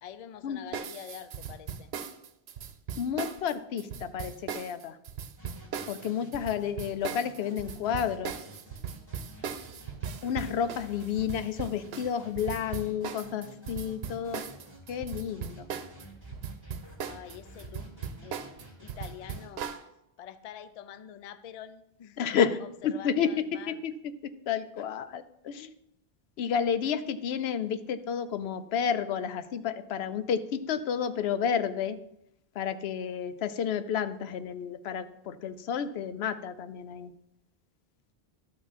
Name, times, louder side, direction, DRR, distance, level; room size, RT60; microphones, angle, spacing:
voice 1, 0.0-1.9 17.0-17.9 18.2-19.7 20.2-22.3 22.6-23.8 24.8-24.9, left 9 dB, 50° left, 13 dB, 0.5 m, -46 dB
sound 1, 0.7-16.1 16.3-19.8, right 7 dB, 85° right, 0.9 m, -38 dB
voice 2, 3.0-5.0 5.9-8.4 10.2-14.4 14.9-15.7 22.2-23.9 24.5-25.7 26.4-32.0 32.6-37.1, left 7 dB, 85° left, 11 dB, 0.8 m, -31 dB
sound 2, 5.4-19.5, right 1 dB, 20° left, 2.4 m, -51 dB
12.0 x 5.9 x 4.2 m, 0.81 s
omnidirectional pair, 1.0 m